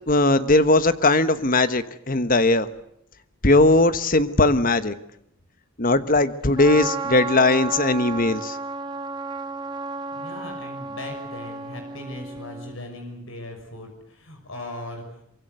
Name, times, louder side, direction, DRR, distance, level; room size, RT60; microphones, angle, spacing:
voice 1, 0.1-2.7 3.4-4.9 5.8-8.6, left 2 dB, 40° left, 12 dB, 1.2 m, -19 dB
Trumpet, 6.6-12.8, right 4 dB, 20° right, 1.2 m, -32 dB
voice 2, 10.2-15.2, left 1 dB, 70° left, 4 dB, 6.2 m, -38 dB
24.5 x 23.0 x 8.1 m, 0.74 s
head